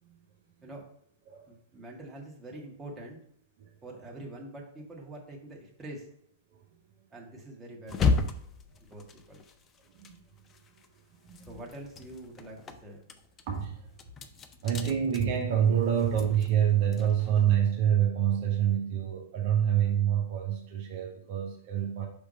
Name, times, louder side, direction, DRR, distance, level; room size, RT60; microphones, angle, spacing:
voice 1, 1.5-3.2 3.8-6.1 7.1-8.2 8.9-9.4 11.5-13.0, right 1 dB, 15° right, -2 dB, 1.7 m, -45 dB
sound 1, 7.9-10.9 11.2-17.6, left 4 dB, 25° left, 0.6 m, -34 dB
voice 2, 11.1-11.6 13.5-13.9 14.6-22.1, right 9 dB, 50° right, 0 dB, 1.1 m, -27 dB
5.4 x 3.4 x 5.0 m, 0.69 s
hypercardioid pair, 105°, 0 cm